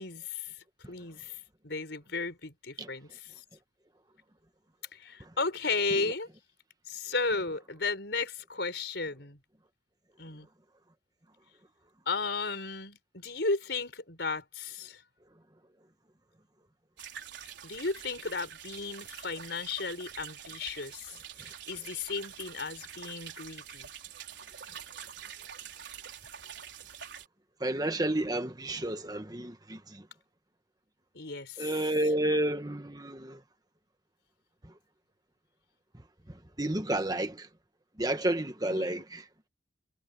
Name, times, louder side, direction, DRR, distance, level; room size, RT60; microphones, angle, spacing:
voice 1, 0.0-3.4 4.9-6.3 6.9-9.4 10.2-10.5 12.1-15.0 17.6-23.9 31.1-31.7 38.7-39.0, left 3 dB, 65° left, 5.2 m, -35 dB
sound 1, 17.0-27.3, right 8 dB, 70° right, 4.1 m, -46 dB
voice 2, 27.6-30.0 31.6-33.4 36.6-37.5 38.0-39.2, right 1 dB, 20° right, 1.5 m, -30 dB
head